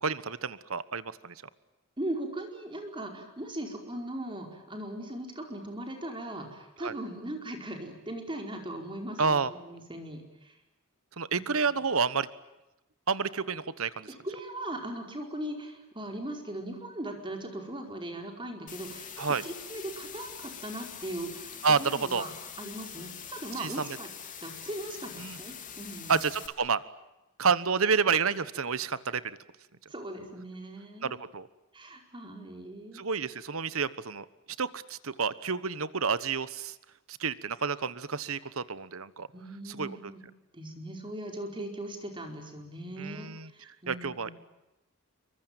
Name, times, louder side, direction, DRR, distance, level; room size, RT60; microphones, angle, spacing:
voice 1, 0.0-1.4 6.8-6.9 9.2-9.5 11.2-12.3 13.1-14.1 19.2-19.4 21.6-22.3 23.6-23.8 25.2-25.4 26.1-26.8 27.4-29.4 31.0-31.5 32.9-34.2 34.6-36.7 37.1-39.3 39.6-40.0 43.0-43.5 43.9-44.3, right 5 dB, 70° right, 16 dB, 1.2 m, -29 dB
voice 2, 2.0-10.6 11.3-11.4 14.2-24.1 24.4-26.2 29.9-31.2 31.7-33.0 39.3-40.2 40.5-44.3, right 1 dB, 25° right, 3 dB, 4.9 m, -39 dB
sound 1, 18.7-26.5, left 8 dB, 40° left, 3.6 m, -44 dB
27.0 x 24.0 x 9.1 m, 0.96 s
head